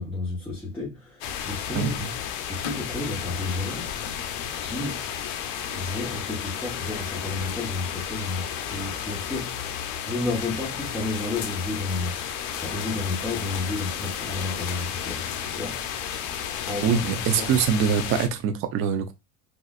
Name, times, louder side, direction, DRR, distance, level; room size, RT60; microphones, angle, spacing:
voice 1, 0.0-2.2 2.5-4.0 4.6-5.1 5.7-16.2 16.7-17.6, left 3 dB, 5° left, 1.0 m, -32 dB
sound 1, 1.2-18.3, left 9 dB, 80° left, 0.7 m, -32 dB
voice 2, 16.8-19.1, right 7 dB, 35° right, 0.4 m, -23 dB
4.1 x 2.4 x 2.4 m
cardioid pair, 135°, 42 cm